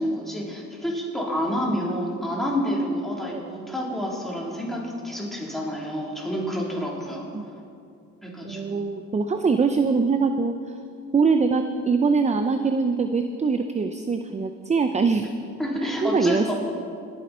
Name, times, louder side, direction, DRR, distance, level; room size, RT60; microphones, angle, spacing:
voice 1, 0.0-7.3 8.2-8.8 15.6-16.5, equal, ahead, -4 dB, 3.7 m, -28 dB
voice 2, 8.4-10.8 11.1-15.3 15.8-16.5, right 4 dB, 25° right, 7 dB, 0.6 m, -23 dB
20.0 x 9.4 x 4.4 m, 2.4 s
cardioid pair, 90°, 30 cm